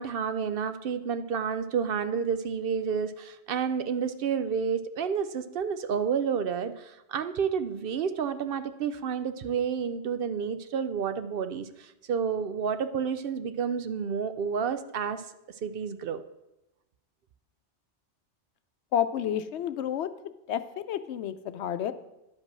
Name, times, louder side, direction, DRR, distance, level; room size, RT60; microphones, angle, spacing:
voice 1, 0.0-15.2 15.6-16.2, right 6 dB, 65° right, 11 dB, 0.7 m, -30 dB
voice 2, 18.9-20.1 20.5-21.9, left 9 dB, 85° left, 12 dB, 0.9 m, -30 dB
10.5 x 5.3 x 6.0 m, 0.92 s
omnidirectional pair, 1.1 m